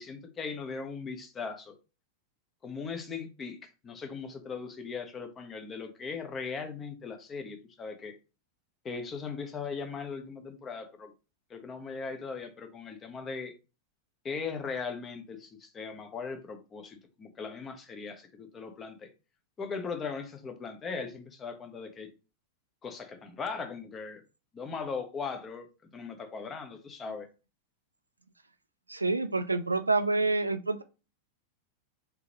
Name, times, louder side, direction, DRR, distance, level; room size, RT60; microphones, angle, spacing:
voice 1, 0.0-1.7 2.6-8.2 8.8-11.1 11.5-13.5 14.2-19.1 19.6-22.1 22.8-24.2 24.5-27.3, left 5 dB, 20° left, 0.7 m, -39 dB
voice 2, 28.9-30.8, right 3 dB, 80° right, 0.3 m, -28 dB
3.6 x 2.9 x 3.0 m
figure-of-eight pair, 90°, 0 cm